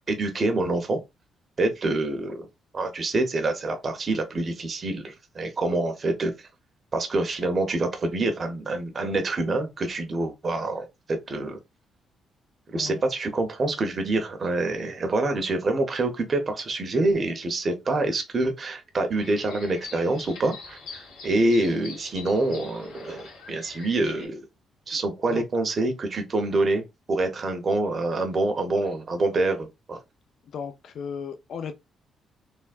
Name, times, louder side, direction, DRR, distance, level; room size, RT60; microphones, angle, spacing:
voice 1, 0.1-1.0 1.6-2.4 2.7-6.5 6.9-11.6 12.7-24.4 24.9-26.8 27.1-30.0, right 2 dB, 40° right, 0.7 m, -26 dB
sound 1, 19.2-24.3, left 4 dB, 85° left, 1.2 m, -43 dB
voice 2, 30.5-31.7, left 6 dB, 65° left, 0.4 m, -35 dB
3.3 x 2.1 x 2.4 m
cardioid pair, 90°, 0 cm